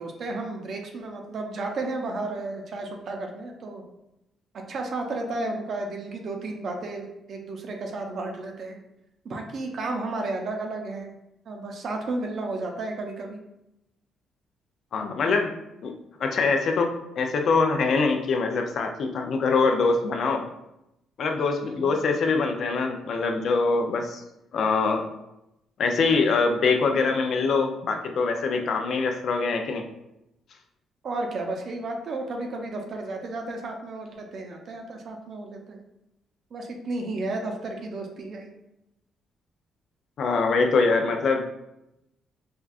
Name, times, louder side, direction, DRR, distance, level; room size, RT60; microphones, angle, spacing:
voice 1, 0.0-3.8 4.7-8.8 9.2-11.1 11.5-13.4 21.6-22.0 31.0-35.8 36.5-38.5, right 2 dB, 60° right, 2 dB, 0.6 m, -33 dB
voice 2, 14.9-15.5 15.8-15.9 16.2-20.4 21.2-24.2 24.5-25.0 25.8-29.8 40.2-41.4, left 4 dB, 65° left, 4 dB, 0.4 m, -24 dB
4.4 x 2.4 x 2.4 m, 0.87 s
cardioid pair, 90°, 0 cm